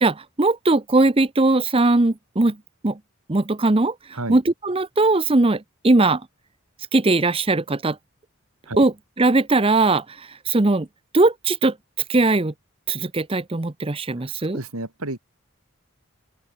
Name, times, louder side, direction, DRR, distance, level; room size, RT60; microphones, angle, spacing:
voice 1, 0.0-2.6 2.8-3.0 3.3-3.9 4.3-6.2 6.9-8.0 8.8-8.9 9.2-10.9 11.1-11.7 12.1-12.5 12.9-14.6, right 2 dB, 25° right, 0.7 m, -19 dB
voice 2, 14.2-15.2, right 2 dB, 90° right, 4.3 m, -32 dB
open air
head